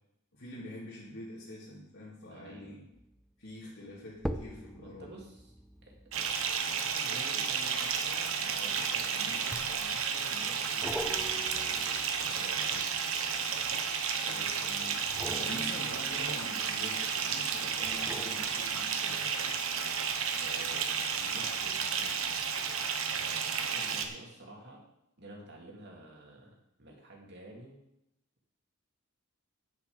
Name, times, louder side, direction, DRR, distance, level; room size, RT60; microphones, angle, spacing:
voice 1, 0.3-2.9 3.4-5.1 14.2-15.0 15.4-19.3, left 1 dB, 60° left, -7 dB, 2.6 m, -46 dB
voice 2, 2.3-2.7 4.8-5.5 5.8-6.3 6.7-13.0 20.4-22.6 23.1-24.8 25.2-27.8, right 1 dB, 50° right, -1 dB, 2.8 m, -50 dB
sound 1, 2.9-3.3 4.1-8.8 9.5-10.1 10.8-13.8 15.0-17.1 17.8-19.2 19.7-19.8, equal, ahead, 0.4 m, -44 dB
Bathtub (filling or washing) / Fill (with liquid), 6.1-24.1, right 6 dB, 70° right, 1.1 m, -32 dB
9.6 x 9.4 x 5.2 m, 0.82 s
head